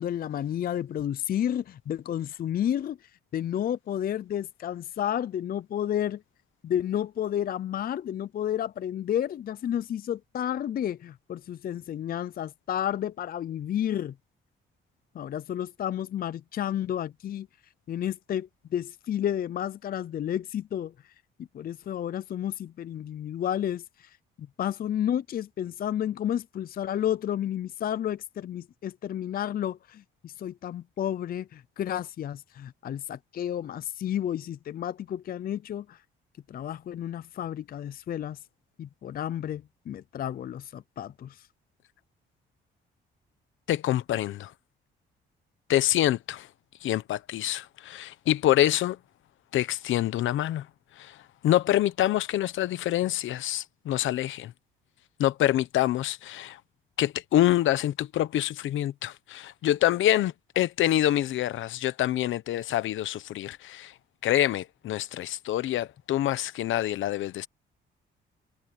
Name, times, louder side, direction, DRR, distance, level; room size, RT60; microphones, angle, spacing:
voice 1, 0.0-6.2 6.6-14.1 15.1-17.5 17.9-21.1 21.4-36.0 36.5-38.4 38.8-41.5, left 10 dB, 50° left, 0.5 m, -31 dB
voice 2, 43.7-44.5 45.7-46.5 46.8-49.0 49.5-50.7 51.0-51.2 51.4-54.5 55.2-56.6 57.0-63.9 64.2-67.5, left 13 dB, 80° left, 1.1 m, -26 dB
cardioid pair, 90°, 20 cm